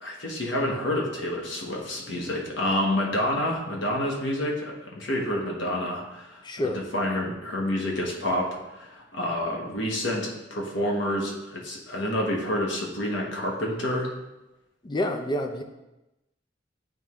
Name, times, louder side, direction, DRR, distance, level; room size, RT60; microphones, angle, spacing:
voice 1, 0.0-8.5 8.8-14.1, left 1 dB, 70° left, -1 dB, 1.1 m, -28 dB
voice 2, 6.4-6.8 14.8-15.6, left 1 dB, 25° left, 5 dB, 0.5 m, -28 dB
9.0 x 3.5 x 3.1 m, 0.99 s
head